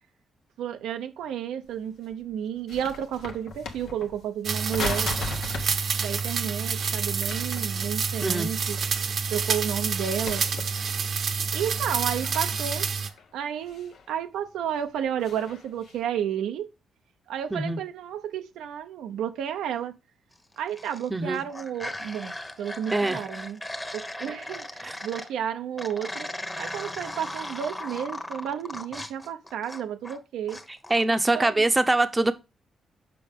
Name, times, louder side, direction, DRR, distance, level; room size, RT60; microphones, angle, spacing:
voice 1, 0.6-5.2 6.0-8.8 9.3-10.5 11.5-12.9 13.3-16.7 17.3-19.9 20.6-23.6 23.9-26.3 26.6-30.6 31.3-31.6, right 9 dB, 90° right, 0.6 m, -32 dB
sound 1, 1.7-1.8 2.1-4.3 4.7-5.8 6.1-6.3 7.0-8.5 8.7-10.0 10.3-11.1 11.5-14.1 14.6-16.0, left 4 dB, 80° left, 1.2 m, -38 dB
sound 2, 4.4-13.1, right 6 dB, 60° right, 0.9 m, -28 dB
sound 3, 20.5-21.1 21.3-25.3 25.8-30.2 30.5-31.0, left 1 dB, 15° left, 1.1 m, -37 dB
voice 2, 21.1-21.4 22.9-23.2 24.8-25.0 30.9-32.3, right 2 dB, 20° right, 0.8 m, -23 dB
6.8 x 5.2 x 3.6 m
cardioid pair, 85°, 0 cm